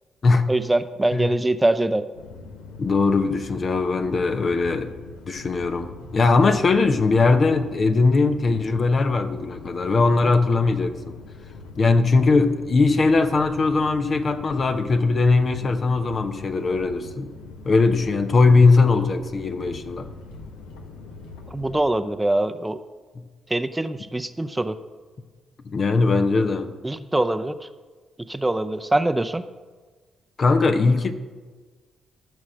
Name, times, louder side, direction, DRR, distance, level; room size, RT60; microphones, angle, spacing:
voice 1, 0.5-2.1 21.5-22.8 23.5-24.8 26.8-27.7 28.3-29.4, right 2 dB, 15° right, 11 dB, 0.6 m, -23 dB
sound 1, 2.1-21.8, left 3 dB, 75° left, 1.1 m, -42 dB
voice 2, 2.8-4.9 5.3-11.2 11.8-17.3 17.6-20.1 25.7-26.7 30.4-31.1, left 3 dB, 50° left, 8 dB, 0.9 m, -20 dB
14.0 x 6.3 x 6.3 m, 1.4 s
hypercardioid pair, 40°, 0 cm